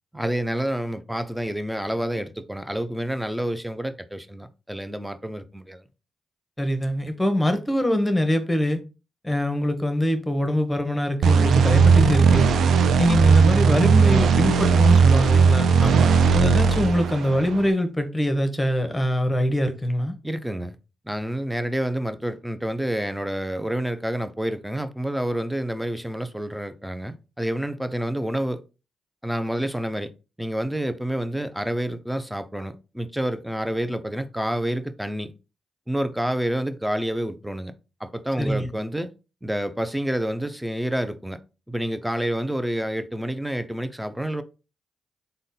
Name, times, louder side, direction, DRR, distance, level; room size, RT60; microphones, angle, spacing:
voice 1, 0.1-5.8 15.8-16.2 20.2-20.8 21.1-28.6 29.2-30.1 30.4-35.3 35.9-37.7 38.0-39.1 39.4-41.4 41.7-44.4, right 1 dB, 5° right, 0.5 m, -28 dB
voice 2, 6.6-8.8 9.2-12.5 13.0-15.7 16.3-20.1 38.4-38.7, equal, 15° left, 1.0 m, -23 dB
sound 1, 11.2-17.7, right 5 dB, 70° right, 0.3 m, -17 dB
3.8 x 2.2 x 3.8 m
supercardioid pair, 45°, 0 cm